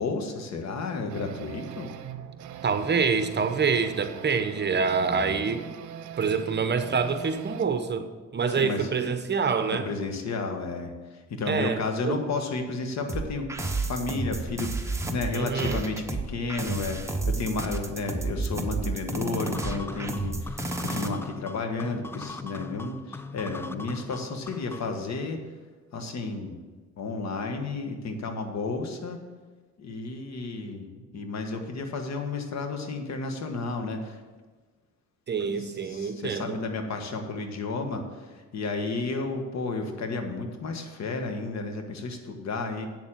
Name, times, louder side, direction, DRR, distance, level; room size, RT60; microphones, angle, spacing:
voice 1, 0.0-1.9 5.1-5.4 8.5-8.9 9.7-25.4 25.9-26.6 27.0-29.2 29.8-34.2 35.5-42.9, left 3 dB, 60° left, 5 dB, 1.5 m, -32 dB
sound 1, 1.1-7.7, right 9 dB, 75° right, 0.7 m, -41 dB
voice 2, 2.6-5.7 6.2-9.9 11.5-12.2 15.3-15.8 35.3-36.6, right 5 dB, 35° right, 9 dB, 0.9 m, -26 dB
sound 2, 13.1-21.1, right 2 dB, 10° right, 1.0 m, -31 dB
sound 3, 19.5-25.0, left 3 dB, 10° left, 0.4 m, -40 dB
8.1 x 6.9 x 7.4 m, 1.3 s
cardioid pair, 90°, 30 cm